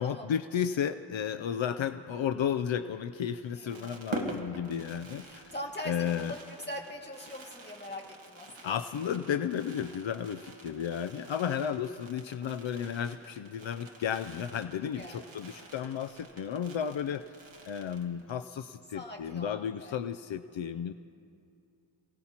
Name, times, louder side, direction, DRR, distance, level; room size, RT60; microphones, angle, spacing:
voice 1, 0.0-5.4 5.9-6.3 8.6-17.2 17.7-20.9, left 8 dB, 75° left, 10 dB, 0.5 m, -33 dB
Fireworks, 3.3-18.5 18.7-18.8 19.0-19.3, right 2 dB, 75° right, 1.7 m, -46 dB
voice 2, 3.5-4.0 5.2-8.7 15.0-15.5 18.9-20.0, left 1 dB, 20° left, -1 dB, 2.1 m, -42 dB
28.0 x 18.0 x 2.9 m, 2.5 s
wide cardioid pair, 95°, 46 cm